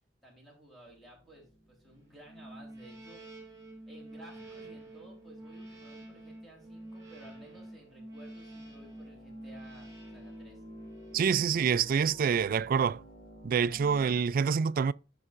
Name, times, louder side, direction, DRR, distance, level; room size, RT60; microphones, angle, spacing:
voice 1, 0.2-3.4 3.9-10.6, right 1 dB, ahead, 3.4 m, -55 dB
sound 1, 0.8-14.3, left 1 dB, 25° left, 2.4 m, -55 dB
sound 2, 2.2-12.1, right 1 dB, 15° right, 5.4 m, -48 dB
voice 2, 11.1-13.0 13.4-14.9, right 6 dB, 50° right, 0.3 m, -26 dB
15.5 x 5.4 x 2.5 m
head